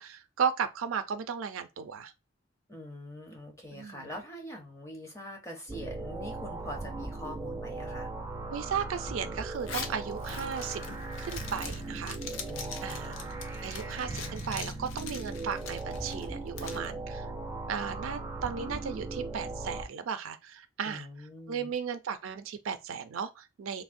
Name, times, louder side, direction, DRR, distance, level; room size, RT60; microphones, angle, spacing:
voice 1, 0.0-2.1 3.7-4.1 8.5-10.8 11.2-12.2 12.8-13.2 13.6-17.3 17.7-21.1 21.5-23.8, right 7 dB, 85° right, 0.4 m, -35 dB
voice 2, 2.7-8.1 12.5-13.3 20.8-21.7, left 1 dB, 15° left, 0.7 m, -44 dB
sound 1, 5.7-19.8, right 2 dB, 15° right, 0.3 m, -38 dB
Zipper (clothing), 9.5-16.9, left 5 dB, 75° left, 0.5 m, -43 dB
3.4 x 2.1 x 2.5 m
head